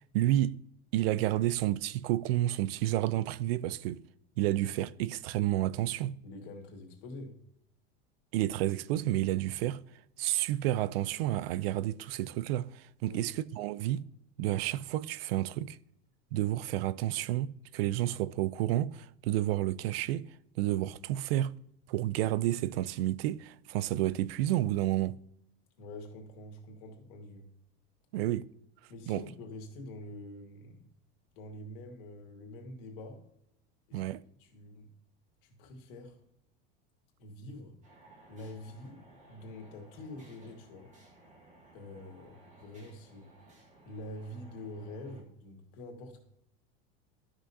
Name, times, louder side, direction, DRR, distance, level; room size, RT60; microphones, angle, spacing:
voice 1, 0.1-0.6 0.9-4.0 4.4-6.1 8.3-9.8 10.2-14.0 14.4-15.8 16.3-20.3 20.6-21.5 21.9-25.2 28.1-28.5 29.1-29.2 33.9-34.2, right 14 dB, 85° right, 0.5 m, -30 dB
voice 2, 6.2-7.3 13.0-13.2 25.8-27.5 28.9-30.9 31.4-33.2 33.9-34.1 34.4-34.9 35.4-36.2 37.2-37.8 38.3-39.0 39.3-40.9 41.7-43.3 43.8-46.2, left 1 dB, 65° left, 2.2 m, -46 dB
sound 1, 37.8-45.2, right 1 dB, 25° right, 1.8 m, -58 dB
12.5 x 6.2 x 2.8 m
supercardioid pair, 160°, 29 cm